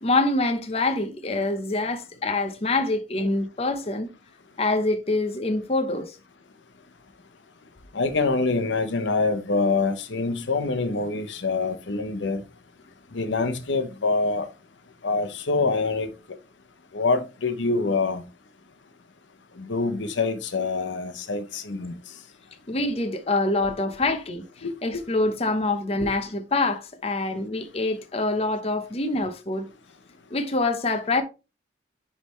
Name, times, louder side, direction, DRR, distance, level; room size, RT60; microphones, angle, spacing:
voice 1, 0.0-4.1 4.6-6.2 22.7-29.7 30.3-31.2, left 2 dB, 35° left, 0.8 m, -25 dB
voice 2, 7.9-12.4 13.1-14.5 15.0-16.1 16.9-18.2 19.6-21.9 24.6-24.7, left 3 dB, 85° left, 0.8 m, -25 dB
9.6 x 3.4 x 3.1 m
head